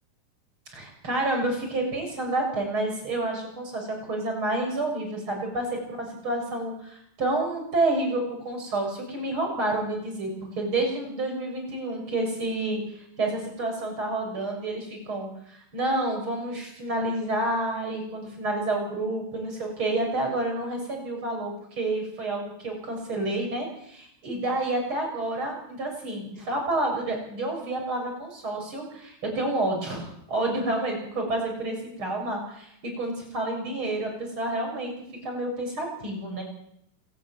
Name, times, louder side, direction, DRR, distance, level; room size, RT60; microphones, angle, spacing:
voice 1, 0.7-10.3 10.6-34.9 35.2-36.4, right 2 dB, 30° right, 1 dB, 7.7 m, -29 dB
27.0 x 11.5 x 9.3 m, 0.74 s
omnidirectional pair, 4.9 m